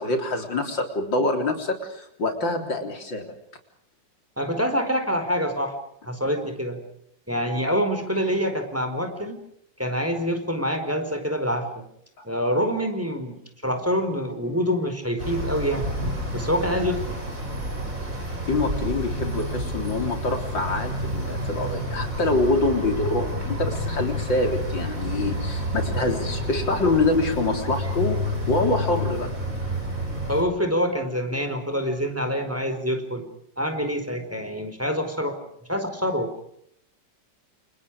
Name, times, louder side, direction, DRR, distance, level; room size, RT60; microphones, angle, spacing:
voice 1, 0.0-3.3 12.2-12.3 18.5-29.3, left 2 dB, 75° left, 5 dB, 4.4 m, -25 dB
voice 2, 4.4-5.8 6.0-6.8 7.3-9.4 9.8-11.8 12.2-15.9 16.3-17.2 30.3-33.3 33.6-35.4 35.7-36.3, equal, 5° right, 6 dB, 4.7 m, -26 dB
sound 1, 15.2-30.4, equal, 45° right, 8.0 m, -29 dB
29.5 x 29.0 x 5.0 m, 0.72 s
omnidirectional pair, 2.0 m